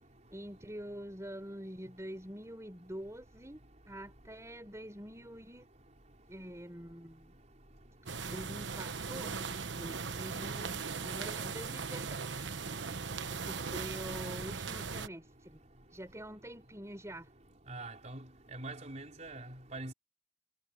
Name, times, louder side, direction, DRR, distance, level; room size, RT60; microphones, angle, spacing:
voice 1, 0.3-5.7 6.3-7.4 8.3-12.5 13.5-15.6 15.9-17.3, equal, 15° right, 6.3 m, -46 dB
sound 1, 8.1-15.1, right 5 dB, 70° right, 1.1 m, -39 dB
voice 2, 17.7-18.2 18.5-19.9, right 2 dB, 40° right, 4.3 m, -43 dB
head